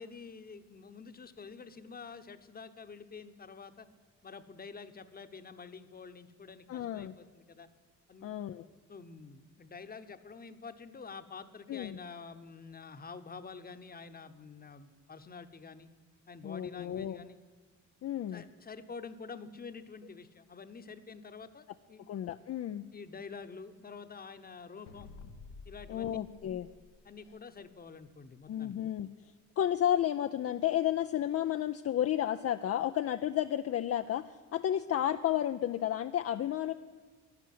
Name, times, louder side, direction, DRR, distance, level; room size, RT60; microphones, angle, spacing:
voice 1, 0.0-3.9 4.2-7.7 8.1-8.4 8.9-15.9 16.3-17.4 18.3-22.0 22.9-25.1 25.7-26.2 27.0-28.7, left 5 dB, 30° left, 9 dB, 1.1 m, -48 dB
voice 2, 6.7-7.2 8.2-8.6 11.7-12.0 16.4-17.2 18.0-18.4 22.1-22.8 25.9-26.7 28.5-29.1 29.6-36.7, left 11 dB, 50° left, 8 dB, 0.5 m, -32 dB
sound 1, 24.9-27.6, left 4 dB, 85° left, 1.0 m, -51 dB
12.0 x 11.0 x 9.4 m, 1.5 s
cardioid pair, 90°, 30 cm